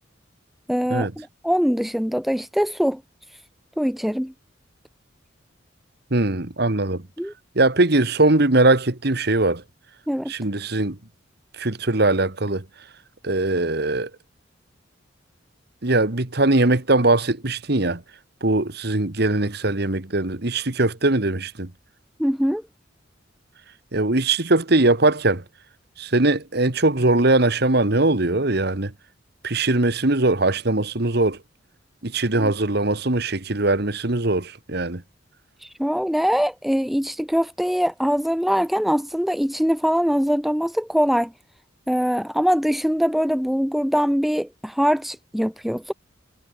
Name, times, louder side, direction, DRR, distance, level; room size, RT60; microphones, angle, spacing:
voice 1, 0.7-3.0 3.8-4.3 7.2-7.3 10.1-10.3 22.2-22.6 32.4-32.5 35.6-41.3 41.9-45.9, equal, ahead, 0.3 m, -22 dB
voice 2, 6.1-7.0 7.6-9.6 10.3-11.0 11.6-12.6 13.2-14.1 15.8-18.0 18.4-21.7 23.9-25.4 26.0-28.9 29.4-31.4 32.0-35.0, right 2 dB, 55° right, 1.7 m, -21 dB
head